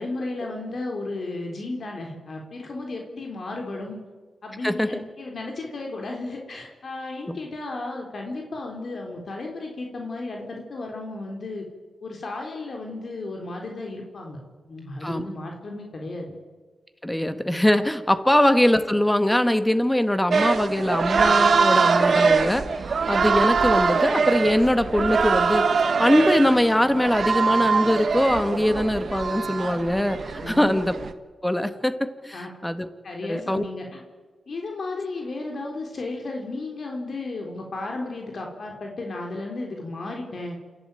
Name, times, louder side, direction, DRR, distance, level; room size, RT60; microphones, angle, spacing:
voice 1, 0.0-4.0 4.4-11.7 12.0-14.4 14.7-16.3 30.4-30.7 32.3-32.5 33.0-34.0 34.5-40.6, left 2 dB, 60° left, 1 dB, 3.6 m, -34 dB
voice 2, 17.0-22.7 23.1-25.7 26.0-31.0 31.4-32.9 33.3-33.6, left 1 dB, 10° left, 10 dB, 1.8 m, -22 dB
sound 1, 20.3-31.1, right 5 dB, 65° right, 1.3 m, -23 dB
27.5 x 12.0 x 9.2 m, 1.4 s
cardioid pair, 50°, 0 cm